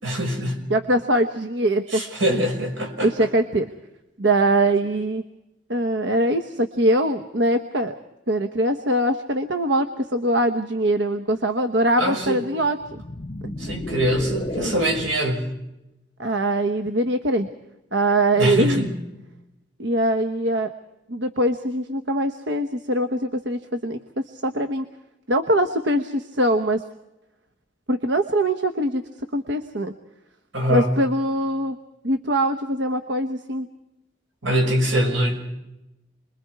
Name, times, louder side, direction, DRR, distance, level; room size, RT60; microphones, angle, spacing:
voice 1, 0.0-0.6 1.9-3.1 12.0-12.4 13.6-15.5 18.4-18.9 30.5-30.9 34.4-35.6, equal, 85° right, 2 dB, 6.0 m, -23 dB
voice 2, 0.7-2.0 2.3-2.5 3.0-3.7 4.2-5.2 5.7-8.0 8.3-13.0 13.4-13.5 14.6-14.7 16.2-17.5 17.9-18.8 19.8-20.7 21.1-24.9 25.3-26.8 27.9-29.9 30.7-31.8 32.0-33.7, right 1 dB, 70° right, 8 dB, 1.1 m, -22 dB
sound 1, 12.8-15.3, left 1 dB, 35° left, 0.7 m, -32 dB
28.5 x 22.0 x 4.8 m, 0.93 s
head